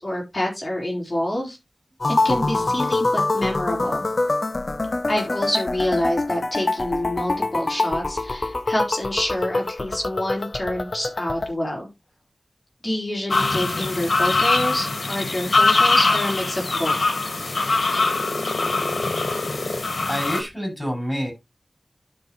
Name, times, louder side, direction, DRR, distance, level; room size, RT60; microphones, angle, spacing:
voice 1, 0.0-1.6 2.2-4.1 5.1-11.9 12.8-17.0, left 1 dB, 30° left, -1 dB, 4.0 m, -27 dB
sound 1, 2.0-11.5, left 2 dB, 55° left, 0.7 m, -25 dB
sound 2, 13.3-20.4, left 3 dB, 80° left, 1.6 m, -22 dB
voice 2, 20.1-21.3, equal, ahead, 1 dB, 6.5 m, -27 dB
12.0 x 5.1 x 3.0 m, 0.22 s
wide cardioid pair, 70°, 0 cm